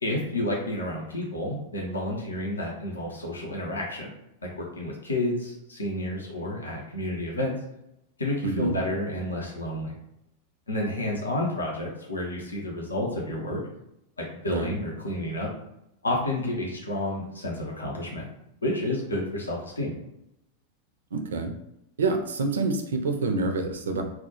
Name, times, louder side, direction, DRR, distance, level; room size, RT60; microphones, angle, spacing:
voice 1, 0.0-4.1 4.4-7.6 8.2-9.9 10.7-13.6 14.2-15.5 16.0-18.3 18.6-19.9, left 1 dB, 75° left, -2 dB, 0.5 m, -30 dB
voice 2, 8.4-8.8 14.5-14.7 21.1-21.5 22.0-24.0, right 3 dB, 65° right, 5 dB, 0.4 m, -27 dB
2.1 x 2.1 x 2.8 m, 0.82 s
figure-of-eight pair, 90°, 0 cm